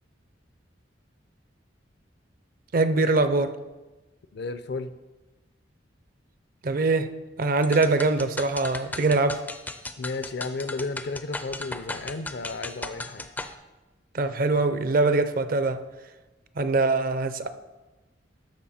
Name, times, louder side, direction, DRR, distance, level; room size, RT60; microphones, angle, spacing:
voice 1, 2.7-3.6 6.6-7.1 7.4-9.4 14.1-15.8 16.6-17.5, right 3 dB, 50° right, 0.5 m, -23 dB
voice 2, 4.3-4.9 10.0-13.3, left 3 dB, 60° left, 0.5 m, -33 dB
sound 1, 7.6-13.5, left 2 dB, 10° left, 0.4 m, -37 dB
13.0 x 5.4 x 4.2 m
head